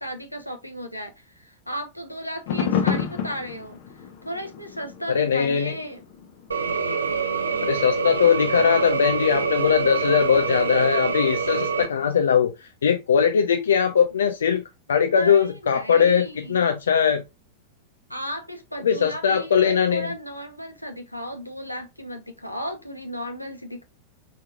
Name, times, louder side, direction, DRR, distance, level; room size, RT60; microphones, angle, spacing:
voice 1, 0.0-3.8 4.2-6.0 15.0-16.6 18.1-23.8, equal, 90° left, 0.9 m, -35 dB
sound 1, 2.5-8.0 8.5-10.3 11.0-11.1, left 8 dB, 50° left, 0.9 m, -31 dB
voice 2, 5.1-5.7 7.6-17.2 18.8-20.1, left 7 dB, 65° left, 0.5 m, -20 dB
sound 2, 6.5-11.9, right 5 dB, 75° right, 0.6 m, -25 dB
5.1 x 4.3 x 2.3 m
figure-of-eight pair, 90°, 0 cm